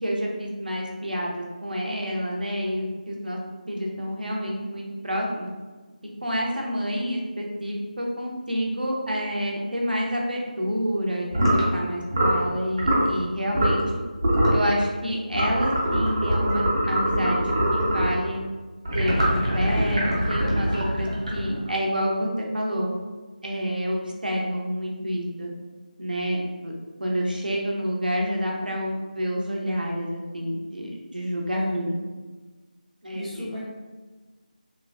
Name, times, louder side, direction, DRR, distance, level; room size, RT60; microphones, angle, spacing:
voice 1, 0.0-3.4 3.7-5.5 6.2-13.8 14.5-18.4 18.9-20.0 20.3-22.3 22.5-22.9 23.4-25.5 26.0-26.7 27.0-31.9 33.0-33.5, equal, 75° right, -1 dB, 0.7 m, -28 dB
sound 1, 11.3-11.7 12.1-12.4 12.8-13.1 13.5-13.9 14.2-14.6 15.3-18.2 18.8-21.7, right 1 dB, 35° right, 0.7 m, -23 dB
voice 2, 31.5-31.9 33.1-33.6, equal, 5° left, -13 dB, 0.3 m, -34 dB
3.2 x 2.1 x 2.4 m, 1.3 s
figure-of-eight pair, 165°, 5 cm